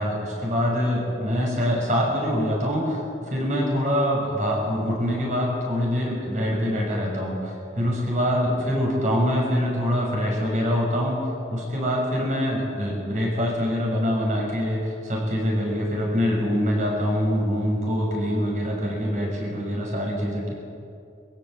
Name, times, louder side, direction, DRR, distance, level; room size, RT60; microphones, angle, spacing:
voice 1, 0.0-11.2 11.5-20.5, equal, 45° right, -1 dB, 6.6 m, -24 dB
24.0 x 16.0 x 8.0 m, 2.6 s
head